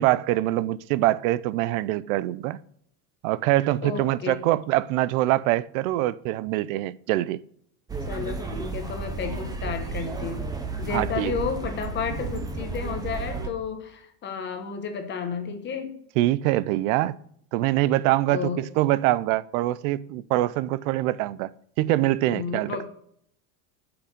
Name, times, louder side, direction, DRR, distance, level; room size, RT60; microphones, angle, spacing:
voice 1, 0.0-2.6 3.2-7.4 10.9-11.3 16.2-17.2 17.5-21.5 21.8-22.9, right 16 dB, 65° right, 0.5 m, -24 dB
voice 2, 3.8-4.4 8.1-10.5 10.8-16.0 18.3-18.6 22.3-22.9, left 6 dB, 25° left, 1.1 m, -32 dB
sound 1, 7.9-13.5, right 3 dB, 10° right, 0.6 m, -32 dB
8.6 x 6.0 x 6.6 m
cardioid pair, 165°, 46 cm